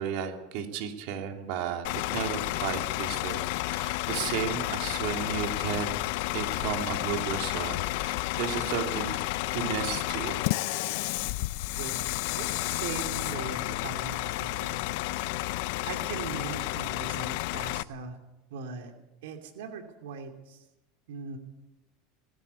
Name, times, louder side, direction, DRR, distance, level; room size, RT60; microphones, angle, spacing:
voice 1, 0.0-3.4 3.7-5.9 6.3-10.4, right 8 dB, 60° right, 4 dB, 2.9 m, -34 dB
Bus / Idling, 1.8-17.8, left 19 dB, 65° left, 0.6 m, -31 dB
voice 2, 12.4-14.9 15.8-18.2 18.5-18.9 19.2-20.6 21.1-21.4, right 5 dB, 80° right, 5 dB, 2.7 m, -40 dB
20.0 x 16.5 x 8.4 m, 0.96 s
supercardioid pair, 150°, 0 cm